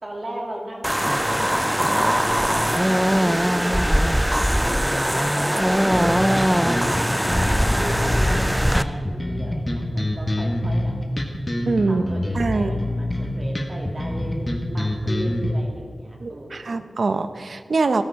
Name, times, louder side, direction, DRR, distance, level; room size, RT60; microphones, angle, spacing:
voice 1, 0.0-4.5 4.8-10.9 11.9-16.8, right 1 dB, 40° right, -1 dB, 2.7 m, -36 dB
sound 1, 0.8-8.8, equal, 5° right, 0.4 m, -21 dB
sound 2, 5.9-15.5, left 1 dB, 25° left, 1.6 m, -26 dB
voice 2, 11.7-12.0 12.3-12.7 16.2-18.0, right 3 dB, 75° right, 10 dB, 0.7 m, -23 dB
14.0 x 12.5 x 3.7 m, 2.1 s
wide cardioid pair, 70°, 0 cm